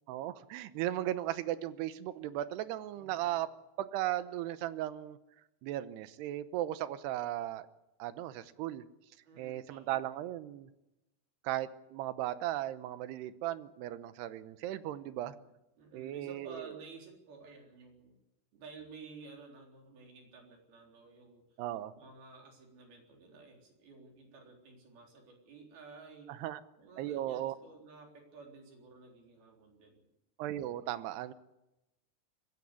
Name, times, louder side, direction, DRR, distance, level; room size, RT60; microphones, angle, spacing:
voice 1, 0.1-3.5 3.8-5.2 5.6-7.7 8.0-8.8 9.4-10.7 11.4-15.4 15.9-16.7 21.6-21.9 26.3-26.6 27.0-27.6 30.4-31.3, right 13 dB, 90° right, 13 dB, 3.0 m, -36 dB
voice 2, 2.9-3.4 9.2-9.9 15.1-15.4 15.8-18.2 18.5-21.4 21.9-26.4 26.8-30.1, right 4 dB, 65° right, 1 dB, 5.7 m, -53 dB
21.0 x 16.0 x 8.3 m, 0.96 s
omnidirectional pair, 4.7 m